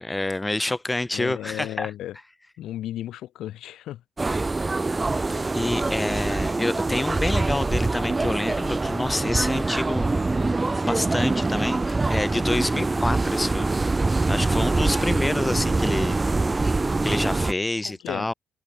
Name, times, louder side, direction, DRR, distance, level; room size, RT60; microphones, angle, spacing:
voice 1, 0.0-1.9 5.3-10.1 10.8-13.8 14.3-16.2 17.0-18.3, left 2 dB, 10° left, 1.8 m, -28 dB
voice 2, 1.1-2.2 2.6-4.0 17.8-18.3, left 13 dB, 80° left, 3.0 m, -34 dB
sound 1, 4.2-17.5, right 3 dB, 15° right, 3.1 m, -24 dB
open air
cardioid pair, 155°, 0 cm